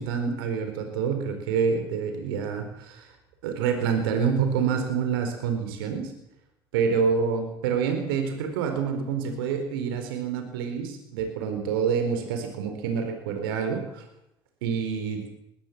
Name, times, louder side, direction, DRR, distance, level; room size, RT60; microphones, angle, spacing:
voice 1, 0.0-3.1 3.4-6.1 6.7-14.0 14.6-15.2, right 6 dB, 80° right, 6 dB, 4.3 m, -27 dB
21.0 x 16.0 x 7.6 m, 0.84 s
hypercardioid pair, 70°, 12 cm